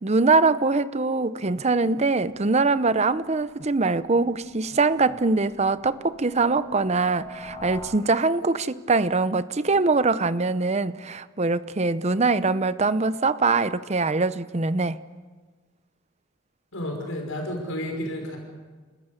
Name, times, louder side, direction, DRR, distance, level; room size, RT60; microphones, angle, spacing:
voice 1, 0.0-15.0, right 3 dB, 30° right, 14 dB, 0.7 m, -23 dB
sound 1, 2.2-7.8, left 2 dB, 25° left, 6.6 m, -47 dB
voice 2, 16.7-18.4, left 1 dB, 80° left, 1 dB, 5.5 m, -31 dB
30.0 x 14.5 x 8.2 m, 1.4 s
head